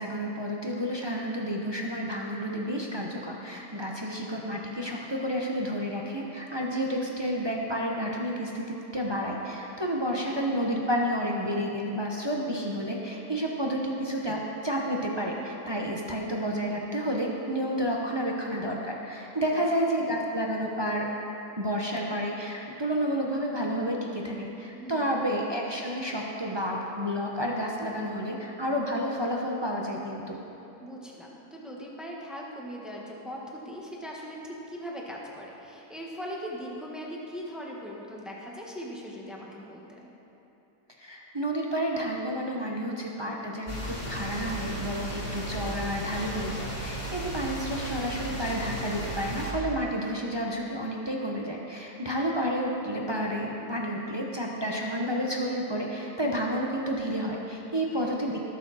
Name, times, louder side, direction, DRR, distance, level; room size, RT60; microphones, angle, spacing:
voice 1, 0.0-21.1 21.6-30.4 41.0-58.4, equal, 20° right, -2 dB, 0.7 m, -30 dB
voice 2, 19.4-19.7 24.7-25.2 30.8-40.0 47.2-47.3 57.9-58.1, equal, ahead, -3 dB, 1.2 m, -40 dB
sound 1, 43.7-49.5, right 1 dB, 25° left, 2.3 m, -35 dB
19.5 x 7.0 x 4.2 m, 3.0 s
omnidirectional pair, 1.7 m